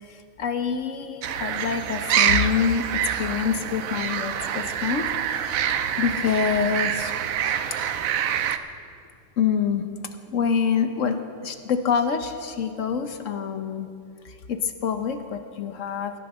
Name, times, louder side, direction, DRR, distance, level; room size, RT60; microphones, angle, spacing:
voice 1, 0.1-2.9 3.2-7.1 9.4-9.8 10.3-13.9 14.2-16.1, left 7 dB, 70° left, 8 dB, 1.2 m, -26 dB
sound 1, 1.2-8.6, right 9 dB, 85° right, 1.1 m, -26 dB
17.5 x 9.8 x 6.7 m, 2.4 s
omnidirectional pair, 1.4 m